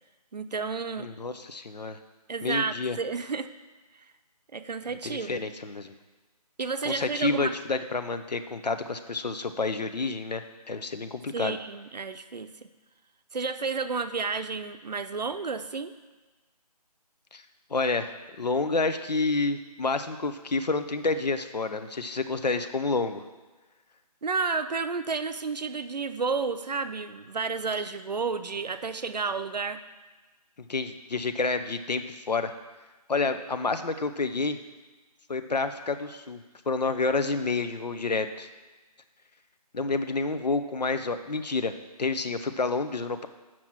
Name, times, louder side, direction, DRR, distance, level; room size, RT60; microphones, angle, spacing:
voice 1, 0.3-1.1 2.3-3.5 4.5-5.4 6.6-7.6 11.3-12.5 13.3-15.9 24.2-29.8, right 4 dB, 90° right, 10 dB, 0.7 m, -31 dB
voice 2, 1.0-2.0 2.4-3.0 5.0-5.9 6.8-10.4 10.7-11.6 17.3-17.4 17.7-23.2 30.6-32.5 33.1-34.6 35.3-38.5 39.7-41.7 42.0-43.3, left 3 dB, 85° left, 9 dB, 0.9 m, -29 dB
7.8 x 6.0 x 6.0 m, 1.2 s
figure-of-eight pair, 180°, 21 cm